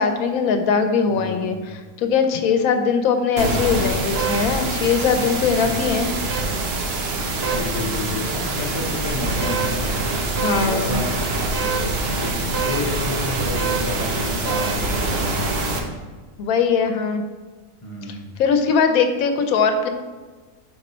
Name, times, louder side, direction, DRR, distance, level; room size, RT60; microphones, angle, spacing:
voice 1, 0.0-6.1 10.4-11.0 16.4-17.2 18.1-19.9, left 5 dB, 80° left, 7 dB, 1.1 m, -20 dB
voice 2, 1.1-1.6 5.6-6.1 7.5-10.2 10.6-15.7 17.8-18.3, left 2 dB, 25° left, -1 dB, 0.8 m, -30 dB
sound 1, 3.4-15.8, right 2 dB, 50° right, 0.9 m, -24 dB
5.3 x 5.3 x 4.2 m, 1.4 s
omnidirectional pair, 1.5 m